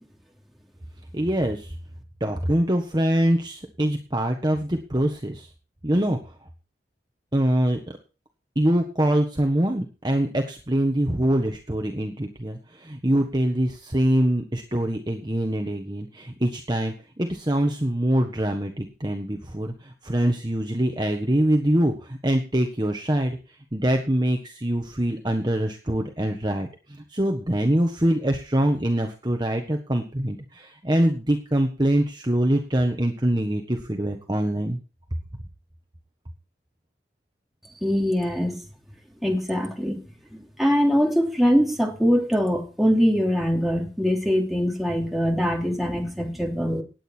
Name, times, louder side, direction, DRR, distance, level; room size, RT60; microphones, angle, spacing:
voice 1, 1.1-1.7 2.2-5.5 5.8-6.2 7.3-8.0 8.5-23.4 23.7-34.8, right 1 dB, 25° right, 3 dB, 1.4 m, -24 dB
voice 2, 37.8-38.6 39.2-46.8, equal, ahead, 0 dB, 2.9 m, -23 dB
18.5 x 9.1 x 4.5 m, 0.34 s
head